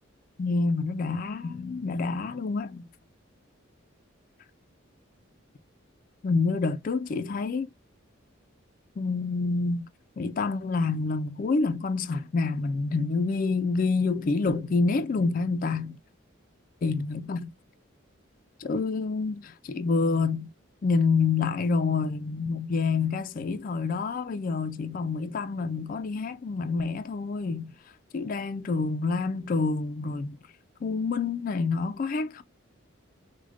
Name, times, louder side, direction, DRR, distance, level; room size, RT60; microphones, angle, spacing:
voice 1, 0.4-2.8 6.2-7.7 9.0-9.9 10.2-16.0 16.8-17.5 18.6-20.5 20.8-27.7 28.1-30.4 30.8-32.4, left 4 dB, 45° left, 0.3 m, -27 dB
4.8 x 2.1 x 2.4 m
head